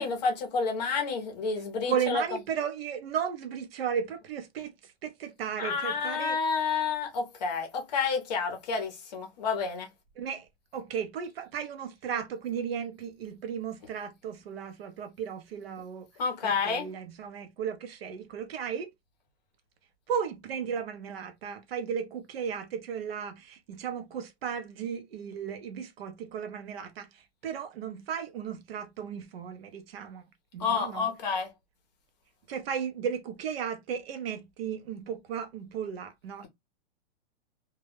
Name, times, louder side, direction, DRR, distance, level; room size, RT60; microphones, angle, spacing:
voice 1, 0.0-2.4 5.6-9.9 16.2-16.9 30.6-31.5, left 5 dB, 40° left, 0.7 m, -30 dB
voice 2, 1.9-6.4 10.2-16.1 16.4-18.9 20.1-30.2 30.5-31.1 32.5-36.5, right 7 dB, 60° right, 0.7 m, -35 dB
2.2 x 2.1 x 3.2 m
hypercardioid pair, 170°, 34 cm